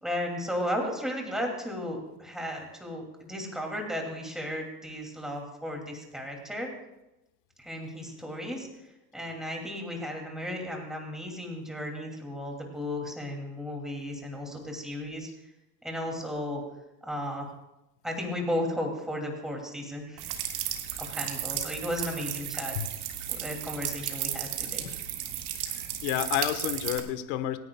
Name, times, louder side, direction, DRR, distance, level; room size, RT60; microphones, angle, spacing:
voice 1, 0.0-6.7 7.6-8.7 9.1-15.3 15.8-16.6 17.0-17.5 18.0-22.8 23.3-24.9, left 1 dB, ahead, 0 dB, 2.5 m, -35 dB
sound 1, 20.2-27.0, right 11 dB, 80° right, 1.9 m, -34 dB
voice 2, 25.8-27.6, left 12 dB, 75° left, 10 dB, 1.4 m, -30 dB
27.0 x 9.8 x 2.3 m, 0.95 s
supercardioid pair, 135°, 48 cm